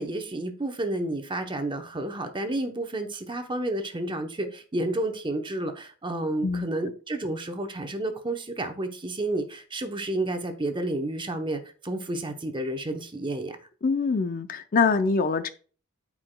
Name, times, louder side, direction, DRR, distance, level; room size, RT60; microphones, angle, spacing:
voice 1, 0.0-13.6, right 1 dB, 20° right, 6 dB, 0.8 m, -31 dB
voice 2, 13.8-15.5, left 4 dB, 40° left, 11 dB, 0.5 m, -24 dB
12.5 x 4.8 x 2.2 m, 0.39 s
head